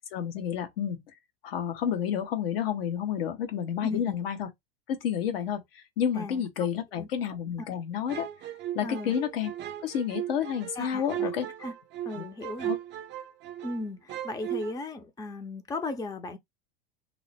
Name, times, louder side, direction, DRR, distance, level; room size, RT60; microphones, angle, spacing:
voice 1, 0.1-1.0 1.4-4.5 4.9-8.3 8.7-9.5 9.8-11.5 12.2-12.3 12.6-12.8, left 8 dB, 75° left, 1.1 m, -30 dB
voice 2, 3.8-4.1 6.1-6.7 7.0-7.1 7.6-7.7 8.8-9.2 10.8-11.7 12.0-12.7 13.6-16.4, left 2 dB, 10° left, 0.6 m, -36 dB
sound 1, 8.1-13.8 14.1-14.7, right 12 dB, 40° right, 0.6 m, -36 dB
3.0 x 2.0 x 4.1 m
hypercardioid pair, 95°, 30 cm